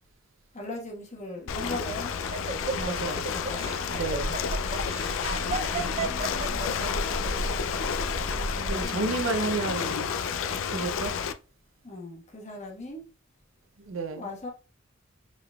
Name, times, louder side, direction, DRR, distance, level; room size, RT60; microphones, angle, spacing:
voice 1, 0.5-2.1 3.3-3.7 5.4-6.8 8.3-9.2 11.8-13.0 14.1-14.5, left 2 dB, 35° left, 1.2 m, -40 dB
Ocean, 1.5-11.3, left 6 dB, 70° left, 0.4 m, -31 dB
Laughter, 1.6-7.1, right 4 dB, 35° right, 0.4 m, -34 dB
sound 1, 2.5-8.9, right 1 dB, 55° right, 1.2 m, -36 dB
voice 2, 2.8-3.3 3.9-4.4 8.6-10.1 10.7-11.1 13.8-14.2, right 3 dB, 80° right, 0.6 m, -31 dB
4.8 x 3.9 x 2.2 m
head